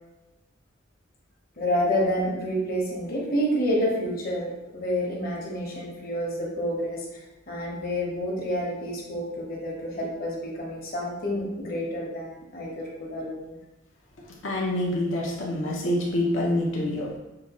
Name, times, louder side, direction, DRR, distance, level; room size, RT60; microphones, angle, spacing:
voice 1, 1.6-7.0 7.5-13.6, equal, 50° left, -3 dB, 1.1 m, -29 dB
voice 2, 14.4-17.1, left 1 dB, 70° left, -3 dB, 0.8 m, -26 dB
5.7 x 2.4 x 3.0 m, 1.0 s
head